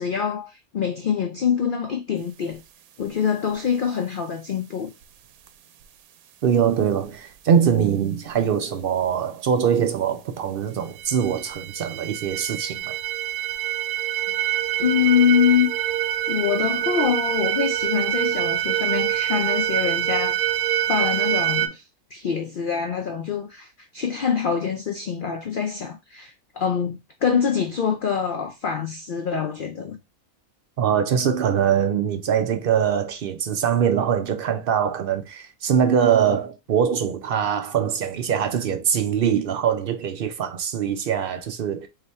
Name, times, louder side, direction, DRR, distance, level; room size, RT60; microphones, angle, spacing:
voice 1, 0.0-2.6 3.0-4.9 14.8-15.7 16.3-20.5 20.9-21.8 22.1-30.0, left 7 dB, 75° left, 0.4 m, -24 dB
voice 2, 6.4-13.0 30.8-41.9, right 8 dB, 65° right, 0.5 m, -23 dB
sound 1, 11.0-21.7, right 12 dB, 80° right, 1.0 m, -25 dB
3.3 x 2.9 x 4.1 m
omnidirectional pair, 1.5 m